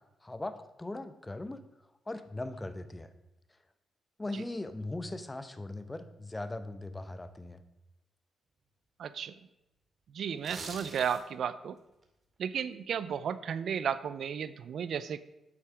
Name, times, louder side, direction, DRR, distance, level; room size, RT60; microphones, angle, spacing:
voice 1, 0.2-1.6 2.1-3.1 4.2-7.6, left 2 dB, 20° left, 11 dB, 0.9 m, -39 dB
voice 2, 9.0-9.3 10.1-11.8 12.4-15.2, right 8 dB, 70° right, 15 dB, 0.5 m, -34 dB
sound 1, 10.3-11.5 11.9-12.0, right 3 dB, 45° right, 2.1 m, -44 dB
8.6 x 8.0 x 4.9 m, 0.92 s
supercardioid pair, 60°, 0 cm